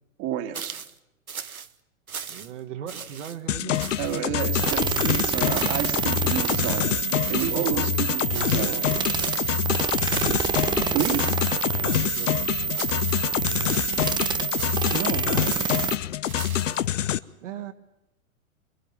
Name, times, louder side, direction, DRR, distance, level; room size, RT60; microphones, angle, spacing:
voice 1, 0.2-0.8 4.0-7.0 7.3-8.8 10.7-11.3 14.9-15.7, right 11 dB, 35° right, 7 dB, 2.2 m, -30 dB
sound 1, 0.5-1.0 1.3-1.7 2.1-2.6 2.9-3.4 3.7-4.2 4.6-5.1 5.5-6.0 6.4-6.9 7.2-7.8 8.3-8.8 9.2-9.7 10.1-10.6 11.0-11.6 11.9-12.4 12.7-13.3 13.7-14.2 14.5-15.1 15.5-16.9, right 6 dB, 80° right, 1.3 m, -39 dB
voice 2, 2.3-4.1 7.4-7.9 8.4-9.3 11.7-12.4 17.4-17.7, right 9 dB, 60° right, 4 dB, 2.1 m, -39 dB
sound 2, 3.5-17.2, left 12 dB, 60° left, 1.0 m, -26 dB
sound 3, 4.4-16.0, right 6 dB, 10° right, 0.9 m, -27 dB
27.0 x 22.0 x 7.2 m, 0.91 s
figure-of-eight pair, 100°, 42 cm